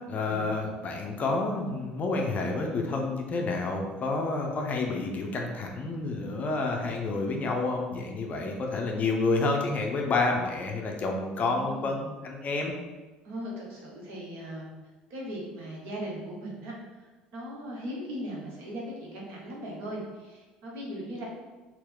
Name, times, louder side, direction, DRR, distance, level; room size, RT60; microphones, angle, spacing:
voice 1, 0.1-12.7, left 3 dB, 30° left, 1 dB, 0.5 m, -29 dB
voice 2, 11.3-12.0 13.2-14.7 15.1-21.3, equal, 50° right, -3 dB, 1.1 m, -39 dB
4.1 x 2.2 x 3.7 m, 1.2 s
figure-of-eight pair, 65°, 5 cm